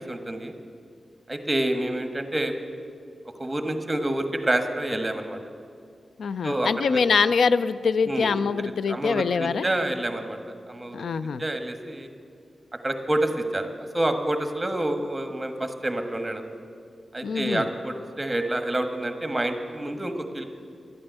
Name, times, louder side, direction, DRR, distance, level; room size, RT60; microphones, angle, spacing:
voice 1, 0.1-0.5 1.3-2.6 3.4-5.4 6.4-7.0 8.1-8.3 8.9-10.4 10.7-11.0 11.4-12.1 12.8-13.7 13.9-16.4 17.1-20.4, right 1 dB, 15° right, 6 dB, 1.3 m, -28 dB
voice 2, 6.2-9.7 10.9-11.4 17.2-17.7, left 5 dB, 90° left, 14 dB, 0.3 m, -24 dB
12.0 x 8.8 x 9.0 m, 2.3 s
wide cardioid pair, 80°, 0 cm